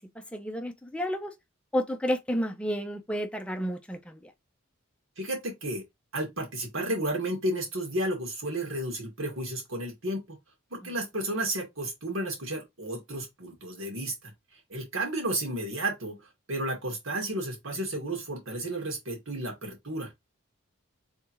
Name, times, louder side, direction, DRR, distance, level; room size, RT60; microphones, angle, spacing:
voice 1, 0.3-1.3 1.7-4.3 10.8-10.9, equal, 5° left, 0.5 m, -31 dB
voice 2, 5.2-5.8 6.1-10.4 10.7-14.3 14.7-16.2 16.5-20.1, right 1 dB, 75° right, 2.0 m, -32 dB
3.6 x 3.3 x 3.0 m
head